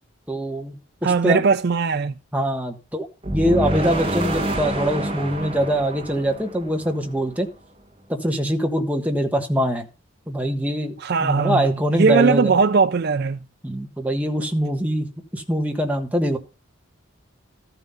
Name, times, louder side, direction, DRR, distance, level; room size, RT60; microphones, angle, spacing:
voice 1, 0.3-1.4 2.3-7.5 8.1-9.9 10.3-12.5 13.6-15.1 15.3-16.4, equal, 5° right, 1.4 m, -23 dB
voice 2, 1.0-2.1 11.0-13.4, right 5 dB, 50° right, 0.4 m, -19 dB
sound 1, 3.2-7.3, right 1 dB, 25° right, 1.9 m, -27 dB
13.5 x 5.8 x 5.6 m
head